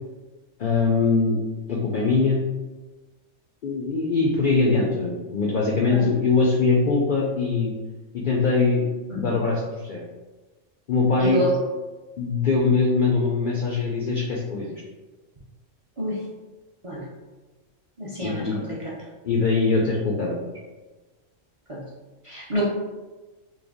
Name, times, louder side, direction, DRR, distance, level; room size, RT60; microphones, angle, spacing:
voice 1, 0.6-1.4 1.7-2.4 3.6-7.7 8.1-8.9 9.2-10.0 10.9-11.4 12.2-14.7 18.2-18.6 19.2-20.4, left 4 dB, 65° left, -2 dB, 0.5 m, -22 dB
voice 2, 11.2-11.5 16.0-16.2 16.8-17.0 18.0-18.4 21.7-21.8 22.2-22.7, equal, 40° right, -6 dB, 0.5 m, -27 dB
3.2 x 2.1 x 3.5 m, 1.2 s
omnidirectional pair, 1.3 m